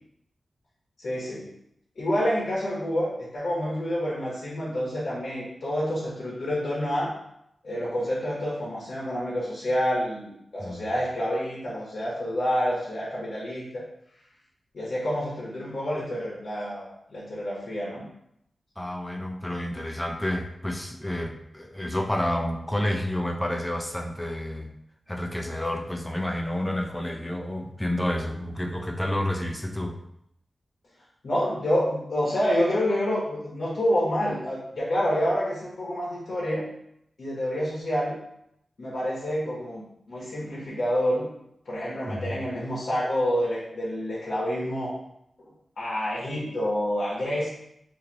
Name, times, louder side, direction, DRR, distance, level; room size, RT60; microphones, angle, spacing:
voice 1, 1.0-1.5 2.0-7.1 7.6-13.8 14.7-18.1 31.2-36.7 37.2-38.2 38.8-41.3 41.7-44.9 45.8-47.5, equal, 65° left, -6 dB, 1.0 m, -28 dB
voice 2, 18.8-24.7 25.1-30.0 42.1-42.4, left 1 dB, 10° left, 3 dB, 0.4 m, -30 dB
3.0 x 2.7 x 3.9 m, 0.76 s
wide cardioid pair, 145°, 0 cm